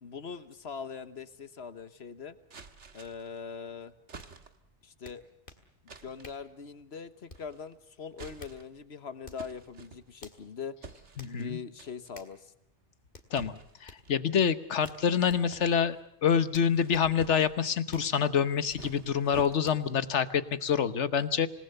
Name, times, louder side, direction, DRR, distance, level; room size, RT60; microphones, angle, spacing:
voice 1, 0.0-2.4 2.9-3.9 4.8-5.2 5.8-10.8 11.2-12.5, left 6 dB, 65° left, 13 dB, 1.4 m, -42 dB
sound 1, 2.5-3.4 4.1-4.7 5.9-6.4 7.3-7.7 8.1-8.8 9.4-10.3 10.8-11.5 11.8-12.2 13.3-14.2 14.8-16.1 16.5-17.6 18.4-19.9, right 4 dB, 90° right, 1.8 m, -49 dB
sound 2, 4.2-4.3 5.0-5.7 6.2-6.5 7.3-7.6 8.2-8.6 9.2-9.5 10.2-10.4 11.2-11.4 12.1-12.4 13.1-13.3 13.8-14.0 14.8-15.4 16.5-17.1 17.9-18.1 18.7-18.9 19.6-19.9, left 3 dB, 50° left, 2.3 m, -51 dB
voice 2, 11.2-11.6 13.3-16.0 16.2-21.5, left 7 dB, 85° left, 13 dB, 1.4 m, -27 dB
26.5 x 19.0 x 6.8 m, 0.77 s
omnidirectional pair, 1.2 m